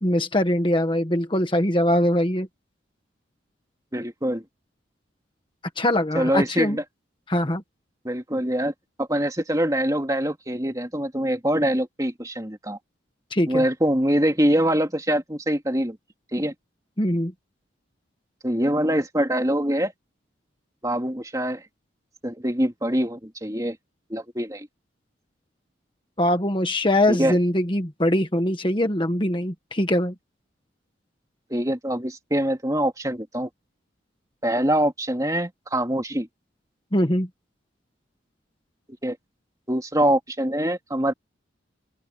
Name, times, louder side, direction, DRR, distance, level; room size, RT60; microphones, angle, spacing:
voice 1, 0.0-2.5 5.8-6.8 7.3-7.6 13.3-13.6 17.0-17.3 26.2-30.1 36.9-37.3, left 1 dB, 25° left, 1.5 m, -22 dB
voice 2, 3.9-4.4 6.1-6.8 8.0-8.7 9.0-12.8 13.5-16.0 16.3-16.5 18.4-19.9 20.8-21.6 22.2-23.8 24.1-24.7 27.1-27.3 31.5-33.5 34.4-36.3 39.0-39.2 39.7-41.1, right 1 dB, 20° right, 2.9 m, -24 dB
open air
head